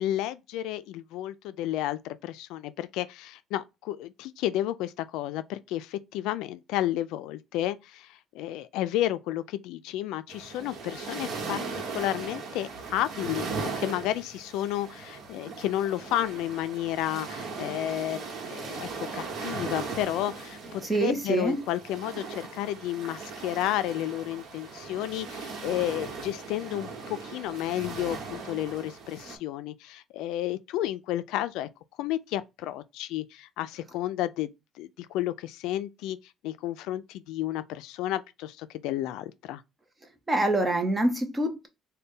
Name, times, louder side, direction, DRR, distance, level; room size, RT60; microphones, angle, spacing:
voice 1, 0.0-11.7 11.9-31.7 32.0-34.5 34.8-36.2 36.4-39.6, left 13 dB, 85° left, 0.3 m, -32 dB
sound 1, 10.3-29.4, right 4 dB, 55° right, 1.0 m, -38 dB
voice 2, 20.9-21.6 40.3-41.7, right 2 dB, 15° right, 0.8 m, -25 dB
3.9 x 2.2 x 3.6 m
cardioid pair, 145°, 0 cm